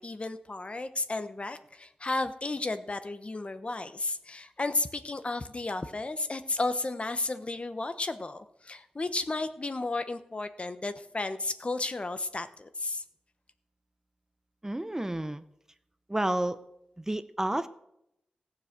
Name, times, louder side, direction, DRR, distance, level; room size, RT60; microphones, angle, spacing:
voice 1, 0.0-13.0, left 2 dB, 40° left, 10 dB, 1.0 m, -33 dB
voice 2, 14.6-15.4 16.1-16.6 17.0-17.7, right 1 dB, 15° right, 12 dB, 0.7 m, -30 dB
16.0 x 7.2 x 6.7 m, 0.81 s
cardioid pair, 55°, 3 cm